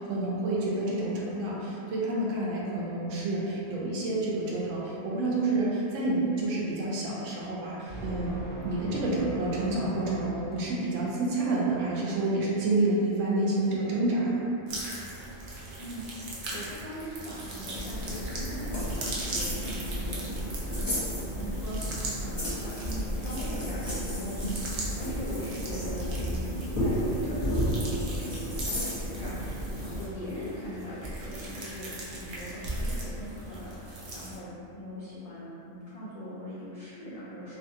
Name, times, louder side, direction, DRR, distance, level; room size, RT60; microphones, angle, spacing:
voice 1, 0.0-8.4 8.6-14.5, right 2 dB, 80° right, -5 dB, 1.0 m, -29 dB
sound 1, 7.9-11.3, equal, 15° right, 0.9 m, -40 dB
sound 2, 14.7-34.4, right 2 dB, 55° right, 0.6 m, -40 dB
voice 2, 15.8-18.9 19.3-20.5 20.8-21.0 21.3-37.6, equal, 70° left, -11 dB, 0.3 m, -40 dB
sound 3, 17.7-30.0, equal, 20° left, 0.7 m, -32 dB
2.5 x 2.4 x 2.6 m, 3.0 s
omnidirectional pair, 1.3 m